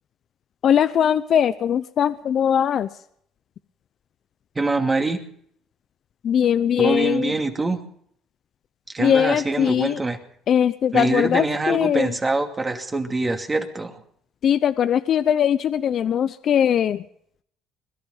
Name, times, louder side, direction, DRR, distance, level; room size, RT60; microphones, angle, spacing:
voice 1, 0.6-2.9 6.2-7.3 9.0-10.0 10.5-12.1 14.4-17.0, left 9 dB, 55° left, 12 dB, 0.7 m, -20 dB
voice 2, 4.5-5.2 6.8-7.8 8.9-10.2 10.9-14.0, right 3 dB, 20° right, 4 dB, 2.5 m, -24 dB
21.5 x 12.0 x 5.4 m, 0.66 s
supercardioid pair, 95°, 0 cm